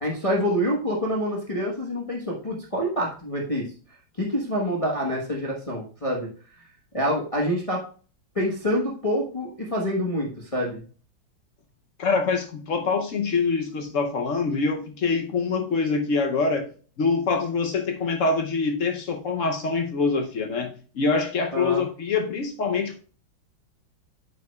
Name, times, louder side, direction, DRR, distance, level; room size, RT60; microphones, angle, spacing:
voice 1, 0.0-3.7 4.2-6.3 6.9-7.8 8.3-10.8 21.5-21.8, equal, 25° left, 0.9 m, -26 dB
voice 2, 12.0-16.7 17.0-23.0, left 4 dB, 65° left, 0.8 m, -25 dB
8.4 x 7.9 x 2.3 m
omnidirectional pair, 2.2 m